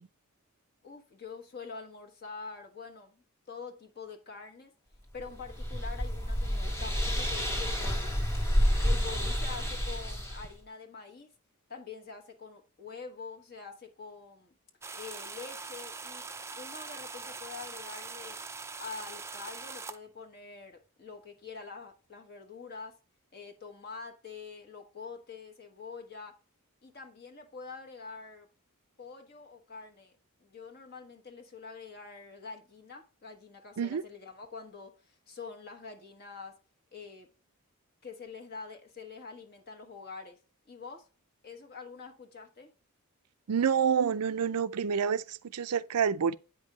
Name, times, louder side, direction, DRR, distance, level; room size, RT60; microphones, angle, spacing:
voice 1, 0.8-3.2 3.5-4.7 5.1-8.1 8.8-11.3 11.7-14.5 14.9-16.3 16.6-18.4 18.8-23.0 23.3-26.4 26.8-28.5 29.0-30.1 30.4-36.6 36.9-37.3 38.0-40.4 40.7-41.1 41.4-42.7, left 5 dB, 45° left, 1.3 m, -45 dB
sound 1, 5.2-10.5, equal, 10° left, 1.5 m, -29 dB
sound 2, 14.8-20.0, right 4 dB, 10° right, 0.4 m, -42 dB
voice 2, 43.5-46.3, right 7 dB, 85° right, 0.5 m, -28 dB
8.7 x 5.3 x 3.0 m
head